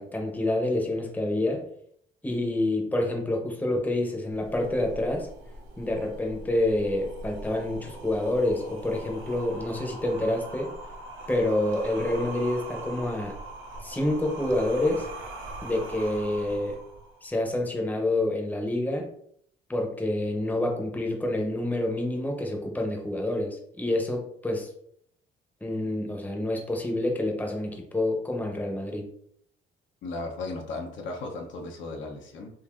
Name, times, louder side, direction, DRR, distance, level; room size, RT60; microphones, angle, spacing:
voice 1, 0.0-1.7 2.2-5.3 5.8-10.7 11.3-13.4 13.8-15.1 15.6-16.8 17.2-19.1 19.7-24.7 25.6-29.1, left 1 dB, 10° left, 1 dB, 0.7 m, -28 dB
sound 1, 4.3-17.3, right 2 dB, 85° right, 0.6 m, -41 dB
voice 2, 30.0-32.5, left 3 dB, 75° left, 2 dB, 0.7 m, -36 dB
3.8 x 2.6 x 2.4 m, 0.69 s
cardioid pair, 90°, 20 cm